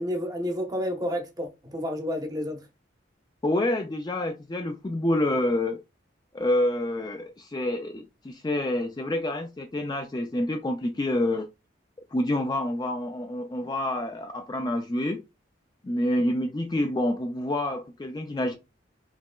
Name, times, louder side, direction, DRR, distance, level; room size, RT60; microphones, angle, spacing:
voice 1, 0.0-2.6, equal, 20° right, 0.7 m, -30 dB
voice 2, 3.4-5.8 6.3-11.5 12.1-15.2 15.8-18.5, left 1 dB, 20° left, 0.3 m, -27 dB
4.3 x 2.9 x 2.3 m
head